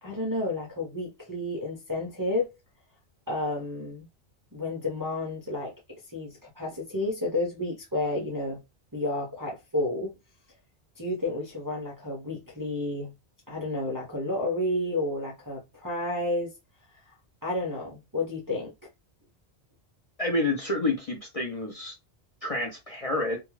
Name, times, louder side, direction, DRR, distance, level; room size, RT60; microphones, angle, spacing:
voice 1, 0.0-2.5 3.3-4.1 4.5-5.7 6.1-8.6 8.9-10.1 11.0-13.1 13.5-16.5 17.1-17.2 17.4-18.7, left 2 dB, 25° right, 0.4 m, -31 dB
voice 2, 20.2-21.9 22.4-23.4, left 2 dB, 40° left, 0.5 m, -28 dB
2.3 x 2.2 x 3.0 m
omnidirectional pair, 1.2 m